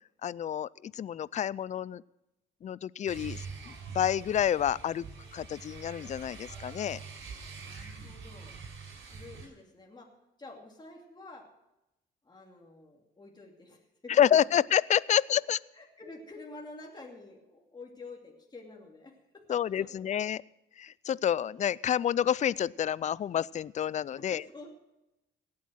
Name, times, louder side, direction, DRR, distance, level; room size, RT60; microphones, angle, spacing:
voice 1, 0.2-2.0 2.6-5.1 5.3-7.0 14.1-15.6 19.5-20.4 20.8-24.4, left 9 dB, 35° left, 22 dB, 0.4 m, -28 dB
sound 1, 3.1-9.5, right 5 dB, 75° right, 6.1 m, -44 dB
voice 2, 7.6-8.6 9.1-11.5 12.2-14.5 15.1-15.4 15.7-20.1 24.2-24.7, left 2 dB, 20° left, 0 dB, 2.7 m, -49 dB
17.0 x 8.5 x 6.4 m, 0.93 s
cardioid pair, 90°, 20 cm